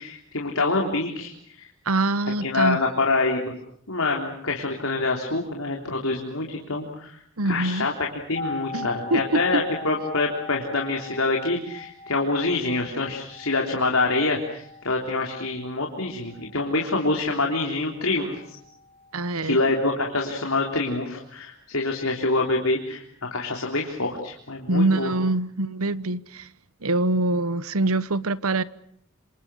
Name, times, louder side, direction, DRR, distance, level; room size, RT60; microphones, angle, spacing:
voice 1, 0.0-1.7 2.4-3.5 3.9-7.9 8.3-18.6 19.4-25.1, left 3 dB, 75° left, 3.6 m, -26 dB
voice 2, 1.9-2.8 7.4-7.9 8.7-9.6 19.1-19.6 24.7-26.5 26.8-28.6, right 2 dB, 80° right, 1.1 m, -24 dB
sound 1, 8.3-18.1 18.4-18.5, left 4 dB, 45° left, 4.0 m, -40 dB
28.0 x 27.0 x 6.3 m
head